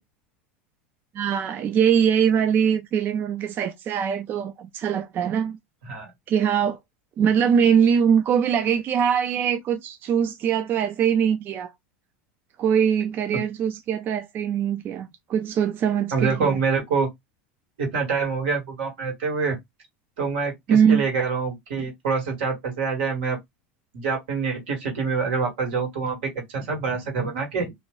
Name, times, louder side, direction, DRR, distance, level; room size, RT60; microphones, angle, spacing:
voice 1, 1.1-5.6 6.3-6.8 7.2-11.7 12.6-16.6 20.7-21.0, right 8 dB, 35° right, 0.3 m, -22 dB
voice 2, 16.1-17.1 17.8-19.6 20.2-23.4 23.9-27.7, right 5 dB, 80° right, 1.5 m, -26 dB
2.7 x 2.2 x 3.0 m
supercardioid pair, 135°, 6 cm